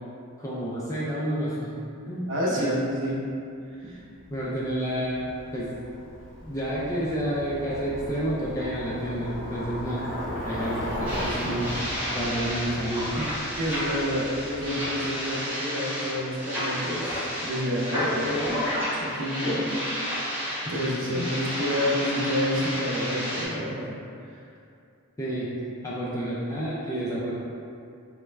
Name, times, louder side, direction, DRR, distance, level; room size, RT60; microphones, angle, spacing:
voice 1, 0.4-1.7 2.0-2.8 3.8-3.9 4.3-5.7 6.5-10.1 10.4-13.3 13.7-13.8 21.1-21.3 25.2-25.5 25.8-27.3, right 1 dB, 15° left, -7 dB, 0.3 m, -30 dB
voice 2, 2.3-3.2 3.8-4.0 11.3-11.6 13.6-18.7 19.0-19.7 20.7-23.9 24.3-24.4, equal, 60° right, -4 dB, 0.6 m, -29 dB
Bicycle, 4.2-15.1, equal, 35° left, 0.7 m, -37 dB
sound 1, 11.0-23.5, equal, 10° right, 0.8 m, -31 dB
3.4 x 2.1 x 3.2 m, 2.5 s
head